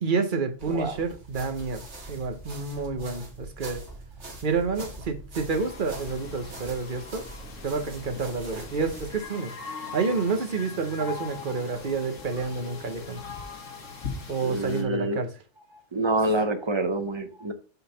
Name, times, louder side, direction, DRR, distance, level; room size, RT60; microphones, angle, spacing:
voice 1, 0.0-3.8 4.4-7.2 7.6-9.5 9.9-13.2 14.3-15.3, right 4 dB, 45° right, 1.0 m, -29 dB
sound 1, 0.6-9.2, right 2 dB, 65° right, 1.8 m, -43 dB
sound 2, 5.5-14.8, left 5 dB, 90° left, 1.7 m, -40 dB
voice 2, 14.4-15.2 15.9-17.5, right 2 dB, 25° right, 0.7 m, -27 dB
5.5 x 4.0 x 5.6 m
omnidirectional pair, 1.3 m